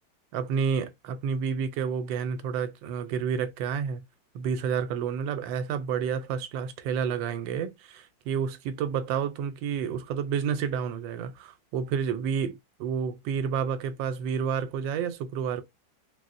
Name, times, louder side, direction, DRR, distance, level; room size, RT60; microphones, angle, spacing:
voice 1, 0.3-4.0 4.3-15.6, right 7 dB, 85° right, 1.3 m, -30 dB
4.0 x 2.0 x 2.5 m
omnidirectional pair, 2.0 m